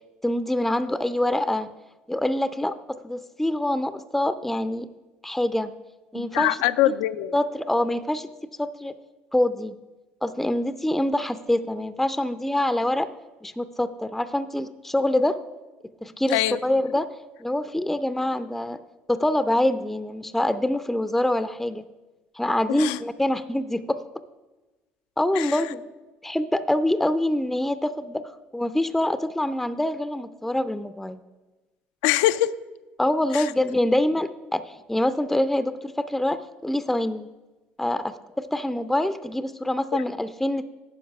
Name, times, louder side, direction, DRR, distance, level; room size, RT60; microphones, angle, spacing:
voice 1, 0.2-1.8 2.1-4.9 5.2-5.7 6.1-6.6 7.3-8.3 8.6-9.0 9.3-9.8 10.2-13.1 13.4-15.4 16.0-17.1 17.4-18.8 19.1-21.8 22.4-24.0 25.2-25.8 26.2-31.2 33.0-37.3 37.8-40.6, left 1 dB, 5° left, 12 dB, 0.4 m, -25 dB
voice 2, 6.1-7.4 16.3-16.6 22.7-23.0 25.3-25.6 32.0-32.5 33.3-33.5 39.9-40.0, left 14 dB, 80° left, 14 dB, 0.3 m, -23 dB
9.5 x 5.5 x 5.4 m, 1.2 s
hypercardioid pair, 65°, 5 cm